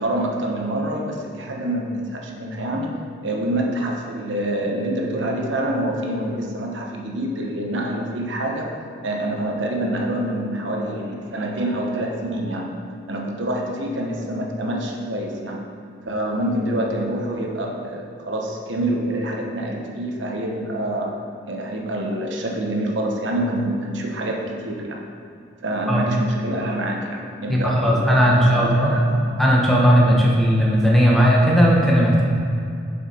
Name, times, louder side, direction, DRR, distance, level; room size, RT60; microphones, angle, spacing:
voice 1, 0.0-12.7 13.1-15.6 16.1-25.0 25.6-29.4, right 1 dB, 70° right, 1 dB, 1.0 m, -26 dB
voice 2, 27.5-29.0 29.4-32.4, equal, ahead, -4 dB, 0.9 m, -16 dB
7.5 x 5.7 x 4.3 m, 2.6 s
head